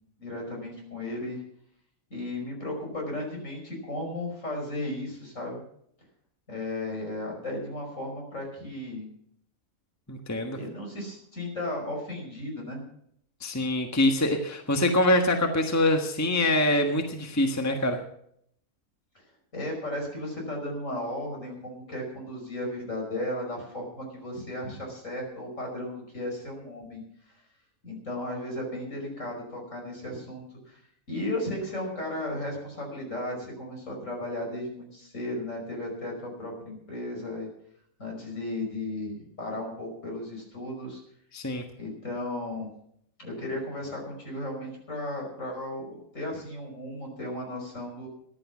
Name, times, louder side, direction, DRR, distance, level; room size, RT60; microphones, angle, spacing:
voice 1, 0.2-1.4 2.1-5.6 6.5-9.1 10.5-12.8 19.5-27.0 27.8-30.8 31.1-37.5 38.0-41.0 41.8-42.7 43.2-48.1, left 1 dB, 60° left, 1 dB, 5.7 m, -35 dB
voice 2, 10.1-10.6 13.4-18.0 41.3-41.6, left 1 dB, 10° left, 4 dB, 1.3 m, -24 dB
14.5 x 11.0 x 6.1 m, 0.69 s
omnidirectional pair, 1.5 m